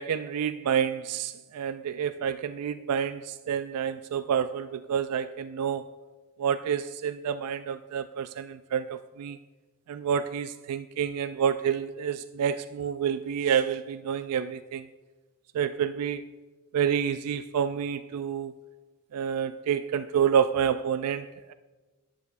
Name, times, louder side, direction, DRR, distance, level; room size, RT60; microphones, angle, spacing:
voice 1, 0.0-5.9 6.4-9.4 9.9-14.8 15.5-16.2 16.7-18.5 19.1-21.5, right 8 dB, 85° right, 0.3 m, -28 dB
13.5 x 10.5 x 2.4 m
head